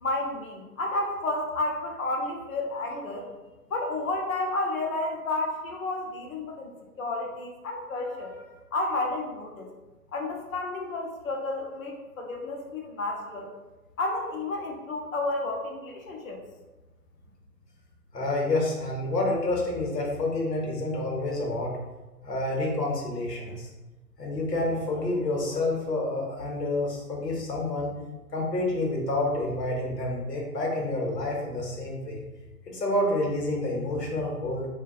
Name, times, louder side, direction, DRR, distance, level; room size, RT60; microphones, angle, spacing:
voice 1, 0.0-3.3 3.7-6.7 7.0-8.4 8.7-9.7 10.1-13.5 14.0-16.4, left 2 dB, 60° left, 1 dB, 0.6 m, -31 dB
voice 2, 18.1-21.8 22.2-23.7 24.2-27.9 28.3-32.2 32.7-34.7, left 2 dB, 85° left, -2 dB, 0.8 m, -28 dB
2.4 x 2.2 x 2.3 m, 1.1 s
figure-of-eight pair, 125°, 47 cm